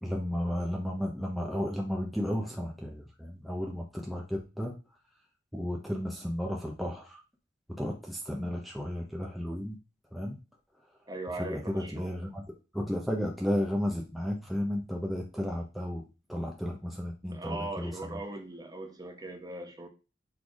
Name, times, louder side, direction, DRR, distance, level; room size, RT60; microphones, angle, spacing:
voice 1, 0.0-4.7 5.5-7.2 7.8-9.8 10.1-10.4 11.4-12.4 12.7-16.0 16.3-18.2, equal, ahead, 0.8 m, -33 dB
voice 2, 11.1-12.3 17.2-19.9, right 2 dB, 20° right, 1.1 m, -40 dB
6.3 x 3.5 x 4.8 m
head